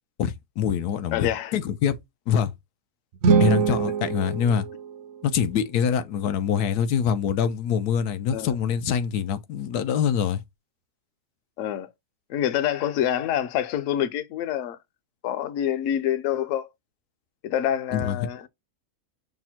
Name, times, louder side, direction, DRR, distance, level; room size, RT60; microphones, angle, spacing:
voice 1, 0.2-2.0 2.3-2.5 3.4-4.7 5.2-10.4 17.9-18.2, left 8 dB, 90° left, 1.2 m, -25 dB
voice 2, 1.1-1.5 3.7-3.8 8.3-8.5 11.6-11.9 12.3-14.8 15.2-16.7 17.4-18.5, left 11 dB, 65° left, 0.9 m, -26 dB
sound 1, 3.1-5.4, right 5 dB, 65° right, 0.8 m, -23 dB
5.9 x 2.1 x 4.2 m
omnidirectional pair, 1.6 m